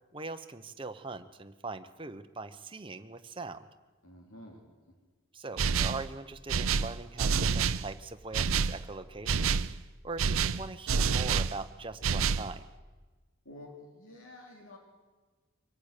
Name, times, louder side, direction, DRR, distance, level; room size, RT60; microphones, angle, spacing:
voice 1, 0.1-3.7 5.3-9.6 10.0-12.7, right 3 dB, 25° right, 8 dB, 0.9 m, -41 dB
voice 2, 4.0-4.7 13.4-14.8, left 1 dB, 80° left, 0 dB, 3.4 m, -50 dB
sound 1, 5.6-6.1 6.5-7.9 8.3-8.8 9.3-9.7 10.2-11.6 12.0-12.5, right 5 dB, 80° right, 0.6 m, -28 dB
24.0 x 17.5 x 6.8 m, 1.3 s
head